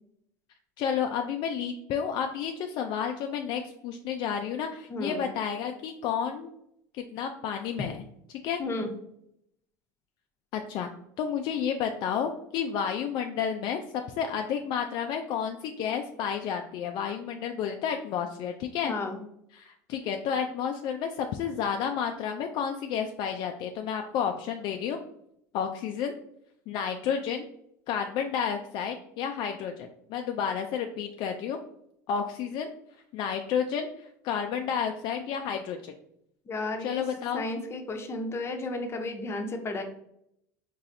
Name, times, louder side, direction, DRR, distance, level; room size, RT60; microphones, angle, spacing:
voice 1, 0.8-6.5 7.1-8.0 8.4-8.6 10.5-10.9 11.2-18.9 19.5-25.0 25.5-26.2 26.7-27.4 27.9-31.6 32.1-32.7 33.1-35.9 36.8-37.4, left 7 dB, 55° left, 5 dB, 0.4 m, -31 dB
voice 2, 4.9-5.2 8.6-8.9 18.8-19.2 36.5-37.0 37.3-39.8, left 2 dB, 30° left, 4 dB, 0.7 m, -33 dB
4.1 x 3.0 x 2.6 m, 0.74 s
supercardioid pair, 95°, 9 cm